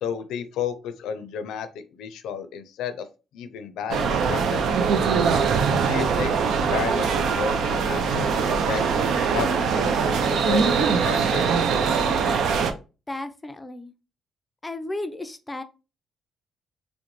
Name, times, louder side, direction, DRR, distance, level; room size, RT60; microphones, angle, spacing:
voice 1, 0.0-3.1 3.3-4.6 5.9-8.8 9.3-11.7, left 7 dB, 85° left, 0.5 m, -32 dB
sound 1, 3.9-12.7, right 5 dB, 75° right, 0.4 m, -22 dB
voice 2, 13.1-13.9 14.6-15.6, left 2 dB, 15° left, 0.4 m, -33 dB
3.7 x 2.1 x 3.0 m
cardioid pair, 90°, 0 cm